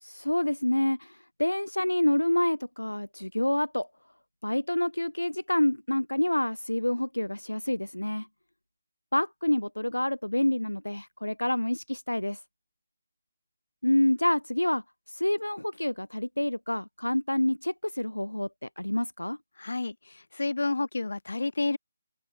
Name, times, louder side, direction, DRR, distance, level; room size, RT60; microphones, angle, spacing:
voice 1, 0.0-3.9 4.4-8.3 9.1-12.4 13.8-19.4, left 1 dB, 85° left, 0.6 m, -28 dB
voice 2, 19.6-21.8, left 3 dB, 65° left, 1.0 m, -30 dB
open air
figure-of-eight pair, 145°, 0 cm